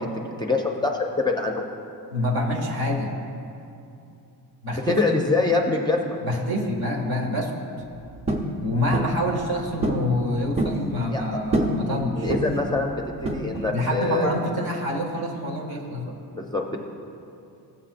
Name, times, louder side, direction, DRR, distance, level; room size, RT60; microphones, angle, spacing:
voice 1, 0.2-1.6 4.9-6.2 11.1-11.2 11.5-14.3 16.3-16.8, left 3 dB, 10° left, 0 dB, 0.5 m, -25 dB
voice 2, 2.1-3.1 4.6-5.0 6.2-7.5 8.6-12.3 13.7-16.2, left 1 dB, 65° right, 1 dB, 1.4 m, -26 dB
sound 1, 8.3-8.5 8.9-9.2 9.8-10.1 10.3-10.8 11.5-11.8 12.3-12.7 13.2-13.7, right 1 dB, 15° right, 0.8 m, -25 dB
15.5 x 7.2 x 2.5 m, 2.7 s
wide cardioid pair, 140°, 40 cm